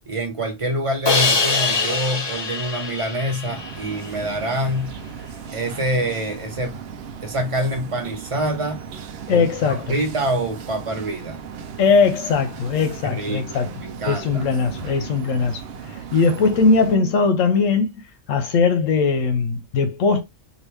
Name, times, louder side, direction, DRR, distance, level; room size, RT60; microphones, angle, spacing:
voice 1, 0.1-5.0 5.5-6.8 7.2-8.8 9.3-11.4 13.0-14.4, right 1 dB, 30° right, 0.9 m, -26 dB
Crash cymbal, 1.1-4.1, left 3 dB, 40° left, 0.4 m, -23 dB
sound 1, 3.4-17.0, right 6 dB, 60° right, 0.7 m, -36 dB
voice 2, 9.3-9.8 11.8-13.7 14.1-20.2, left 4 dB, 80° left, 1.0 m, -20 dB
2.8 x 2.6 x 3.3 m
omnidirectional pair, 1.3 m